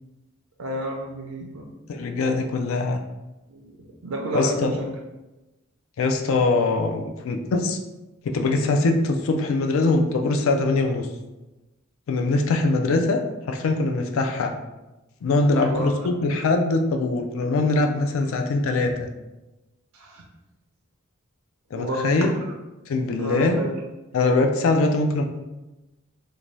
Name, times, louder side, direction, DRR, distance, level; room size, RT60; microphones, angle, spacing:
voice 1, 0.6-1.7 3.5-3.7 4.0-4.9 15.5-15.9 19.9-20.2 21.7-22.1 23.2-23.7, right 1 dB, 75° right, 0 dB, 0.4 m, -30 dB
voice 2, 1.9-3.0 4.3-4.7 6.0-7.8 8.2-11.1 12.1-13.2 13.5-14.5 15.2-19.1 21.7-22.3 22.9-23.6 24.1-25.2, left 3 dB, 70° left, 4 dB, 0.3 m, -22 dB
2.6 x 2.2 x 3.1 m, 1.0 s
head